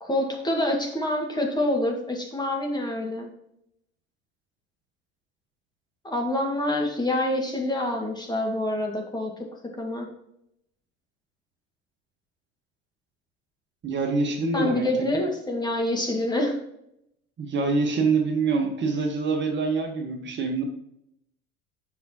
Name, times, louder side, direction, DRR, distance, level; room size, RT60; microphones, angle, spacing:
voice 1, 0.0-3.3 6.0-9.5 9.8-10.1 14.5-16.6, left 1 dB, 15° left, 0 dB, 2.0 m, -26 dB
voice 2, 13.8-14.9 17.4-20.6, right 4 dB, 35° right, 2 dB, 1.6 m, -25 dB
7.6 x 6.1 x 3.0 m, 0.77 s
hypercardioid pair, 70°, 30 cm